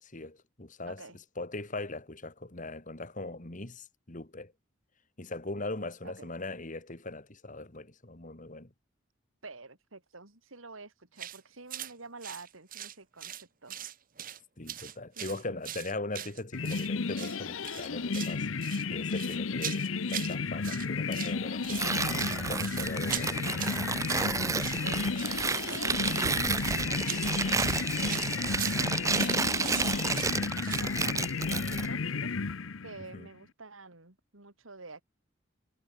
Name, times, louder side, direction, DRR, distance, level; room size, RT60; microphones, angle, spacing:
voice 1, 0.0-4.5 5.2-8.7 14.6-18.5 18.9-23.4 29.6-29.8 33.1-33.3, left 2 dB, 40° left, 2.4 m, -40 dB
voice 2, 0.9-1.2 6.0-6.3 9.4-13.8 15.2-15.6 23.3-25.0 25.7-30.2 30.4-32.3 32.8-35.0, right 3 dB, 85° right, 3.5 m, -49 dB
sound 1, 11.2-11.4 11.7-11.9 12.2-13.4 13.7-14.4 14.7-16.9 17.1-17.4 17.6-18.4 18.6-20.4 20.6-21.3 21.6-30.9, right 11 dB, 45° right, 1.4 m, -41 dB
sound 2, 16.5-33.1, left 4 dB, 85° left, 0.8 m, -33 dB
Tearing, 21.7-31.9, right 4 dB, 15° right, 0.5 m, -31 dB
head